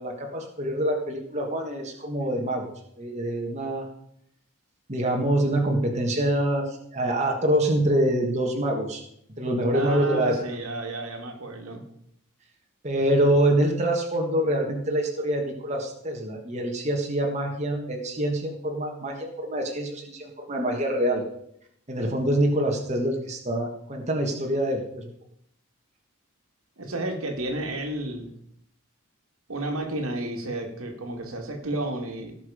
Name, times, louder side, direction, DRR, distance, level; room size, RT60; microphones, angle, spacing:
voice 1, 0.0-2.7 3.0-3.9 4.9-9.0 9.4-10.3 12.8-21.2 21.9-25.0, right 1 dB, 30° right, 1 dB, 1.5 m, -25 dB
voice 2, 9.7-11.8 26.8-28.3 29.5-32.3, right 1 dB, 75° right, 3 dB, 2.1 m, -31 dB
17.5 x 6.1 x 5.0 m, 0.72 s
head